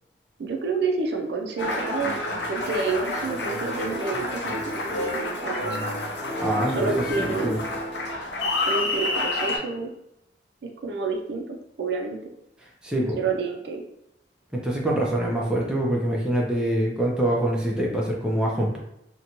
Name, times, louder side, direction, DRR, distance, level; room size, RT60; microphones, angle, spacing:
voice 1, 0.4-2.2 2.5-5.9 6.7-7.6 8.6-9.9 10.6-12.3 13.2-13.8, right 4 dB, 70° right, 3 dB, 0.4 m, -29 dB
Applause, 1.6-9.6, left 2 dB, 75° left, 0.6 m, -29 dB
voice 2, 6.4-6.9 7.2-7.6 12.8-13.2 14.5-18.8, right 1 dB, 5° right, -3 dB, 0.5 m, -25 dB
2.6 x 2.2 x 2.9 m, 0.82 s
head